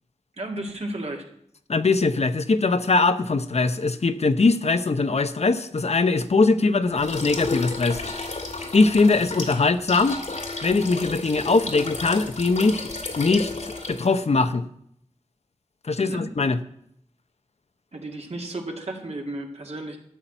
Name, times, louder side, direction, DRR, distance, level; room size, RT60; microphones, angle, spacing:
voice 1, 0.4-1.3 16.0-16.3 17.9-20.0, right 1 dB, 65° right, 1 dB, 2.2 m, -33 dB
voice 2, 1.7-8.3 8.7-10.2 10.6-12.9 13.2-14.6 15.8-16.6, left 3 dB, 65° left, 10 dB, 0.7 m, -21 dB
sound 1, 7.0-14.2, left 3 dB, 80° left, 2.2 m, -33 dB
13.0 x 5.8 x 9.1 m, 0.72 s
wide cardioid pair, 80°, 12 cm